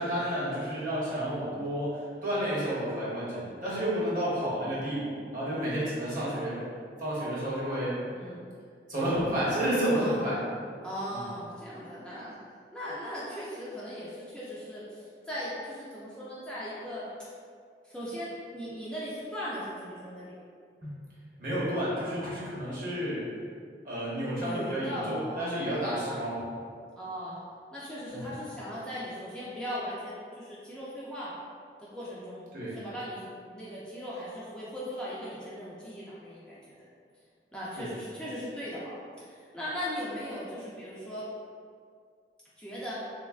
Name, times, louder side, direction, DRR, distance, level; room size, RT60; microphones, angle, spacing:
voice 1, 0.0-6.6 7.0-8.0 8.9-10.4 11.1-11.2 20.8-20.9 21.4-23.3 23.8-26.5 28.1-28.3 32.5-32.8 37.8-37.9, equal, 50° right, -8 dB, 0.9 m, -31 dB
voice 2, 9.9-10.2 10.8-12.4 12.7-17.1 17.8-20.4 22.0-22.3 24.4-25.7 27.0-27.4 27.7-31.4 31.8-32.5 32.7-36.8 37.5-41.3 42.6-42.9, equal, 5° left, -9 dB, 0.3 m, -38 dB
3.3 x 2.1 x 2.3 m, 2.2 s
head